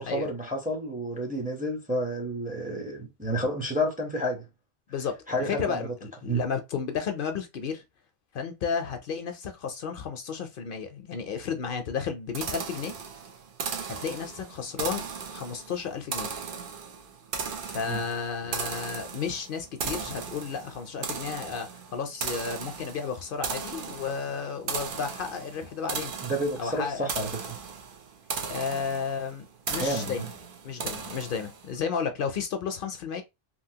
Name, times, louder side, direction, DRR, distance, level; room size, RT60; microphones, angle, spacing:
voice 1, 0.0-4.5 5.3-5.9 6.3-6.4 17.9-18.0 26.2-27.6 29.7-30.2, equal, 10° right, 0.6 m, -30 dB
voice 2, 5.5-7.8 8.3-13.0 13.9-16.3 17.7-26.1 26.6-27.1 28.5-30.3 30.6-33.2, left 6 dB, 65° left, 0.7 m, -33 dB
sound 1, 12.3-31.7, right 6 dB, 65° right, 0.8 m, -37 dB
3.0 x 2.6 x 2.7 m
omnidirectional pair, 1.0 m